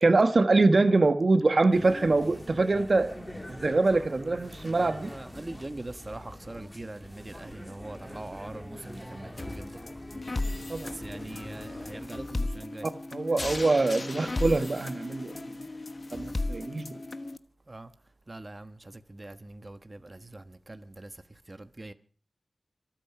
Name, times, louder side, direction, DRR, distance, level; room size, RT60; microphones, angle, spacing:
voice 1, 0.0-3.1 3.5-5.1 10.7-10.9 12.8-15.5 16.1-16.9, right 3 dB, 55° right, 1.2 m, -24 dB
sound 1, 1.7-12.1, left 1 dB, 15° left, 3.3 m, -44 dB
voice 2, 4.7-9.8 10.8-12.9 17.7-17.9 18.3-21.9, right 2 dB, 30° right, 1.2 m, -42 dB
sound 2, 9.4-17.4, left 2 dB, 45° left, 1.2 m, -35 dB
26.0 x 9.1 x 5.9 m
wide cardioid pair, 65°, 0 cm